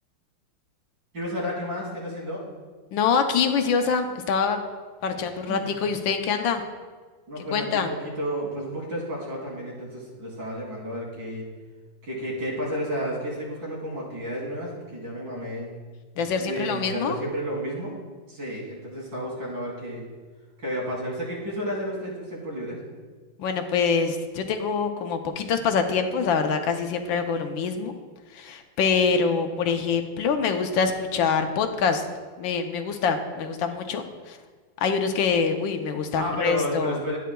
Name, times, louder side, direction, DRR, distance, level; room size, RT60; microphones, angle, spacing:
voice 1, 1.1-2.4 5.1-5.2 5.5-5.9 7.3-11.5 12.0-15.7 16.4-17.9 18.3-20.0 20.6-22.8 36.1-37.2, equal, 65° right, -4 dB, 3.3 m, -32 dB
voice 2, 2.9-4.6 5.0-6.6 7.5-7.9 16.2-17.2 23.4-27.9 28.3-32.0 32.4-34.4 34.8-37.0, left 5 dB, 75° left, 6 dB, 1.4 m, -25 dB
13.0 x 9.3 x 2.3 m, 1.4 s
omnidirectional pair, 2.1 m